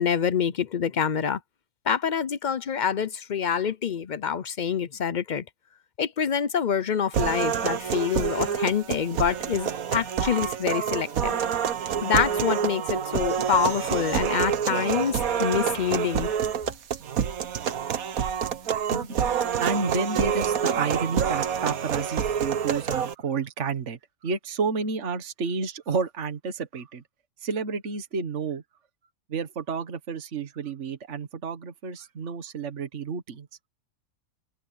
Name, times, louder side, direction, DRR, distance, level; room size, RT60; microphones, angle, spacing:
voice 1, 0.0-1.4 1.9-5.4 6.0-11.4 12.0-16.3, left 7 dB, 50° left, 0.5 m, -26 dB
sound 1, 7.1-23.1, right 8 dB, 75° right, 1.5 m, -27 dB
voice 2, 19.6-27.0 27.4-28.6 29.3-33.5, right 5 dB, 55° right, 1.7 m, -30 dB
omnidirectional pair, 1.5 m